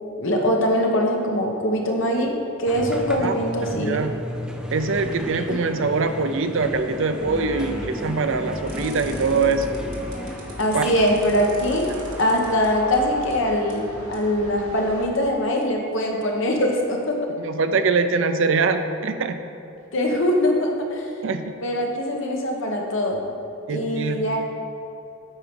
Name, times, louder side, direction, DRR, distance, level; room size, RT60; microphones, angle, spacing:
voice 1, 0.2-2.3 2.6-4.0 5.5-5.6 10.6-11.9 12.2-17.2 19.9-21.1 21.6-23.3 23.7-24.4, equal, 60° left, 1 dB, 1.1 m, -22 dB
sound 1, 2.7-11.2, equal, 5° right, 0.4 m, -34 dB
voice 2, 3.8-4.2 4.7-9.8 10.7-10.9 17.4-19.4 21.2-21.5 23.7-24.3, right 4 dB, 60° right, 9 dB, 0.5 m, -23 dB
sound 2, 7.2-15.3, equal, 25° right, 1.9 m, -38 dB
sound 3, 8.7-15.1, right 1 dB, 80° right, 1.5 m, -41 dB
8.5 x 4.6 x 5.2 m, 2.7 s
head